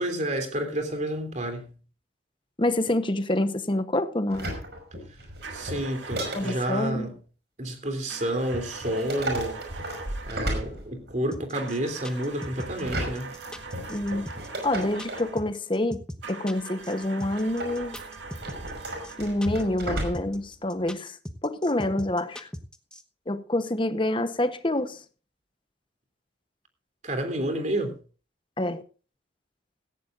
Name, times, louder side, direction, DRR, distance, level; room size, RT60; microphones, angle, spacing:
voice 1, 0.0-1.8 5.5-7.2 7.6-9.6 10.2-13.3 27.0-28.0, right 1 dB, 40° right, 3.3 m, -30 dB
voice 2, 2.6-4.5 6.3-7.0 13.9-14.3 14.6-16.0 16.3-18.0 19.2-21.2 21.4-22.5 23.3-25.0 28.6-28.8, left 1 dB, 25° left, 1.0 m, -27 dB
sound 1, 4.3-6.9 8.5-11.3 12.7-15.3 17.4-20.5 20.8-20.9, right 1 dB, 60° right, 5.4 m, -34 dB
sound 2, 5.4-7.0 8.1-10.5 11.5-15.5 16.2-19.5, right 4 dB, 80° right, 2.2 m, -42 dB
sound 3, 11.3-23.0, equal, 5° left, 1.1 m, -39 dB
17.5 x 15.0 x 2.6 m
head